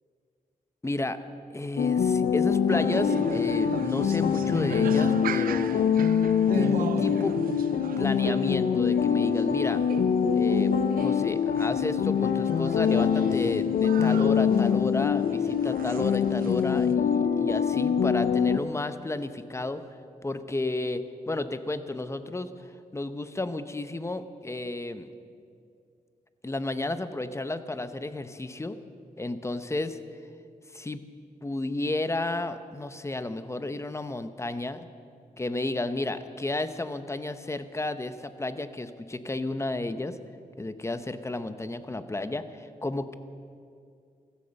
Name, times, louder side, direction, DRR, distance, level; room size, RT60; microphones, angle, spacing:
voice 1, 0.8-1.2 1.5-5.9 6.5-7.4 7.7-9.8 10.3-19.8 20.2-25.1 26.4-28.8 29.2-30.0 30.7-31.0 31.4-34.8 35.4-40.2 40.6-43.1, left 2 dB, 20° left, 11 dB, 0.8 m, -32 dB
sound 1, 1.8-18.6, left 7 dB, 80° left, 0.6 m, -24 dB
sound 2, 2.7-17.0, right 8 dB, 85° right, 0.5 m, -37 dB
16.0 x 14.0 x 6.5 m, 2.3 s
cardioid pair, 85°, 15 cm